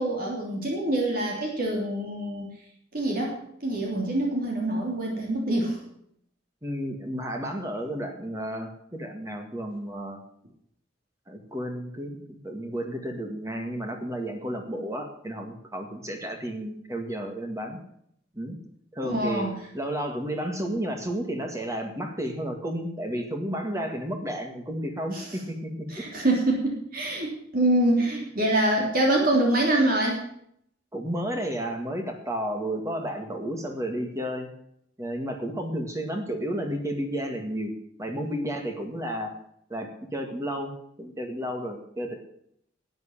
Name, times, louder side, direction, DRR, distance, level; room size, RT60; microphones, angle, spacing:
voice 1, 0.0-2.5 2.9-5.8 19.0-19.6 25.1-25.3 25.9-30.2, right 1 dB, 50° right, -1 dB, 3.1 m, -25 dB
voice 2, 6.6-10.2 11.3-17.8 18.4-18.6 18.9-19.5 19.7-25.7 26.0-26.1 30.9-34.5 35.0-37.7 38.0-39.3 39.7-40.7 41.0-42.1, equal, 15° right, 4 dB, 1.8 m, -32 dB
12.5 x 9.0 x 7.3 m, 0.69 s
head